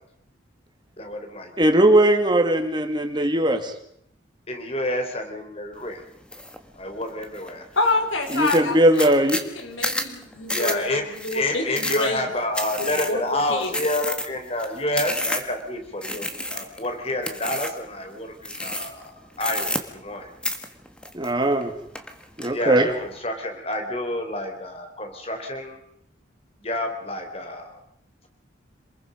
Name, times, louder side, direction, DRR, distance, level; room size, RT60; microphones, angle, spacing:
voice 1, 1.0-1.7 4.5-6.0 6.8-7.6 10.5-11.0 11.3-20.3 22.5-25.8 26.6-27.8, left 1 dB, 30° left, 5 dB, 3.7 m, -29 dB
voice 2, 1.6-3.7 8.3-9.4 21.1-21.7 22.4-22.9, right 1 dB, 25° right, 5 dB, 2.2 m, -19 dB
sound 1, 6.3-6.6 7.0-7.5 7.9-8.0 8.2-15.6 16.0-16.9 17.2-17.8 18.4-19.1 19.4-20.2 20.4-21.6 21.9-22.5, left 1 dB, 5° left, 1.6 m, -30 dB
voice 3, 7.7-12.3 12.8-13.2 13.5-13.7, left 2 dB, 85° left, 4 dB, 4.6 m, -27 dB
27.5 x 21.0 x 5.2 m, 0.72 s
head